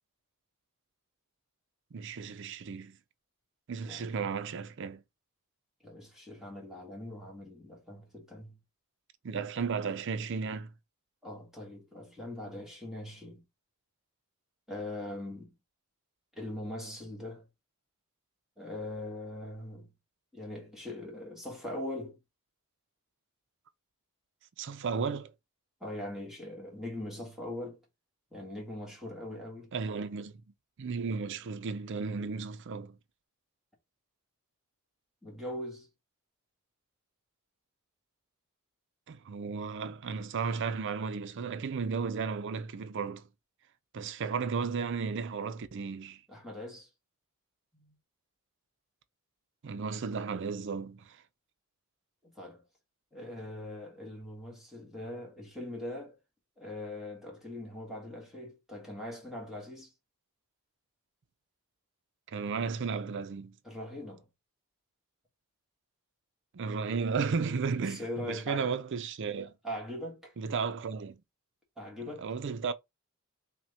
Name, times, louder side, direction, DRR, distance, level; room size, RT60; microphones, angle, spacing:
voice 1, 1.9-3.0 3.7-5.0 9.2-10.7 24.6-25.3 29.7-30.3 30.8-33.0 39.1-43.3 43.9-46.2 49.6-51.2 62.3-63.6 66.5-69.5 70.4-71.2 72.1-72.7, right 5 dB, 55° right, 0.4 m, -34 dB
voice 2, 5.8-8.6 11.2-13.4 14.7-15.5 16.3-17.5 18.6-19.9 20.3-22.2 25.8-27.8 28.3-29.7 35.2-35.9 46.3-46.9 47.7-48.0 52.2-52.6 53.1-56.2 56.6-59.9 63.6-64.3 67.6-68.8 69.4-70.3 71.8-72.3, left 1 dB, ahead, 1.3 m, -41 dB
5.7 x 2.2 x 2.8 m
head